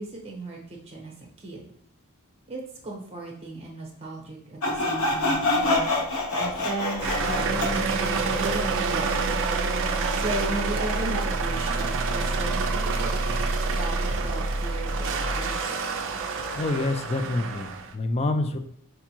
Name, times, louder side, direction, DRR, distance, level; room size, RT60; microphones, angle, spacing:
voice 1, 0.0-1.7 2.5-5.9 6.3-9.4 10.2-13.1 13.7-15.6, right 2 dB, 25° right, -1 dB, 1.0 m, -36 dB
Sawing, 4.6-7.8, left 2 dB, 65° left, 0.8 m, -25 dB
sound 1, 7.0-17.9, right 3 dB, 60° right, 0.4 m, -27 dB
voice 2, 16.6-18.6, left 2 dB, 30° left, 8 dB, 0.3 m, -27 dB
4.5 x 2.4 x 2.9 m, 0.67 s
head